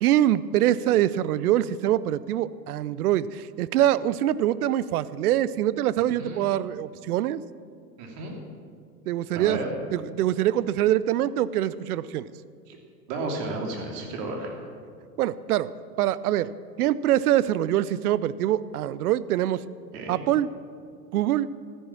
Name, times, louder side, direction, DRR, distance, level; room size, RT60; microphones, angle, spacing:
voice 1, 0.0-7.4 9.1-9.6 9.9-12.3 15.2-15.7 16.0-16.5 16.8-19.6 20.1-20.5 21.1-21.5, right 12 dB, 65° right, 17 dB, 0.6 m, -24 dB
voice 2, 8.0-8.4 9.3-9.7 12.7-12.8 13.1-14.6 19.9-20.3, right 2 dB, 50° right, 1 dB, 3.1 m, -33 dB
13.5 x 10.0 x 7.2 m, 2.2 s
hypercardioid pair, 95°, 48 cm